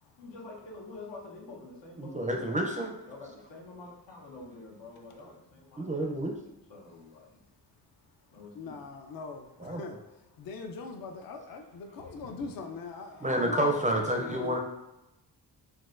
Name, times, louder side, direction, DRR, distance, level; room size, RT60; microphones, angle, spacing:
voice 1, 0.2-2.5 3.1-6.1 6.7-7.4 8.3-8.8, left 3 dB, 85° left, 0.9 m, -47 dB
voice 2, 2.0-2.9 5.8-6.3 9.6-9.8 13.2-14.6, right 1 dB, 20° right, 0.4 m, -29 dB
voice 3, 8.5-14.6, left 4 dB, 55° left, 0.4 m, -41 dB
4.0 x 2.2 x 2.5 m
cardioid pair, 85°, 42 cm